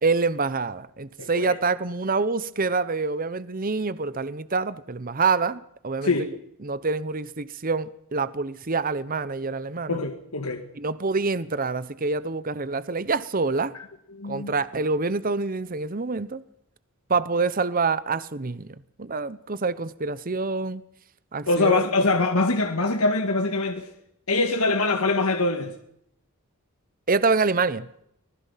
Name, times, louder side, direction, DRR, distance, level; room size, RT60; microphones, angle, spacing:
voice 1, 0.0-6.3 6.6-10.0 10.7-13.7 14.2-16.4 17.1-20.8 21.3-21.8 27.1-27.9, right 4 dB, 40° right, 0.9 m, -26 dB
voice 2, 1.2-1.5 6.0-6.3 9.9-10.7 14.1-14.5 21.5-23.9 24.3-25.7, left 3 dB, 85° left, 2.1 m, -23 dB
25.0 x 19.5 x 5.8 m
head